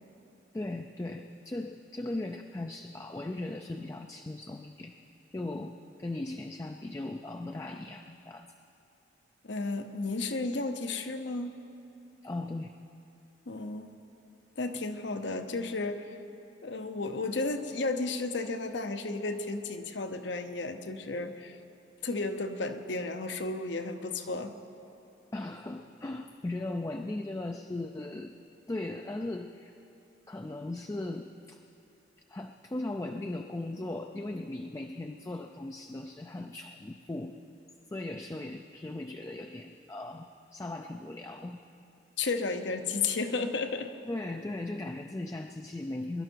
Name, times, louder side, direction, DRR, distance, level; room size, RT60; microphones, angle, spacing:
voice 1, 0.5-4.9 5.3-8.5 12.2-12.7 25.3-28.4 28.7-29.7 30.3-31.6 32.3-37.4 37.9-41.6 44.0-46.2, left 2 dB, 15° left, 5 dB, 0.3 m, -38 dB
voice 2, 9.4-11.5 13.5-13.9 14.6-16.1 16.6-21.6 22.0-24.6 42.2-43.9, left 3 dB, 70° left, 7 dB, 0.8 m, -33 dB
22.0 x 11.5 x 4.6 m, 2.8 s
head